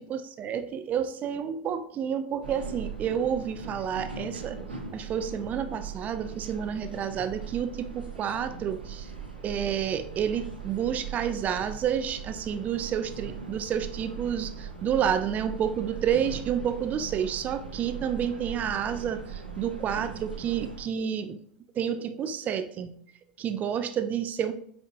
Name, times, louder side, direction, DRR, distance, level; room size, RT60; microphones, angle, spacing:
voice 1, 0.0-4.6 4.9-9.1 9.4-21.4 21.7-22.9 23.4-24.5, right 8 dB, 30° right, 10 dB, 0.6 m, -30 dB
sound 1, 2.4-20.8, right 6 dB, 85° right, 1.3 m, -40 dB
8.4 x 5.1 x 2.5 m, 0.65 s
figure-of-eight pair, 80°, 5 cm